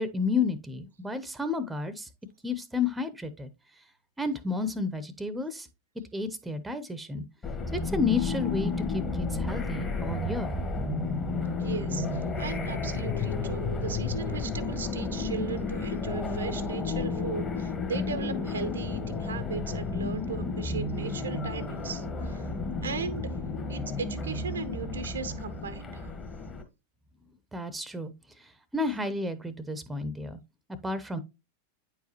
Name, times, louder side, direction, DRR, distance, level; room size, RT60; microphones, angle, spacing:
voice 1, 0.0-2.1 2.4-3.5 4.2-5.7 6.1-7.2 7.7-10.5 27.5-28.1 28.7-30.4 30.8-31.2, left 3 dB, 5° right, 0.8 m, -31 dB
sound 1, 7.4-26.6, left 3 dB, 25° left, 1.4 m, -32 dB
voice 2, 11.5-22.5 22.8-23.3 23.7-26.1, right 5 dB, 70° right, 0.7 m, -37 dB
9.3 x 4.7 x 2.9 m
figure-of-eight pair, 90°, 0 cm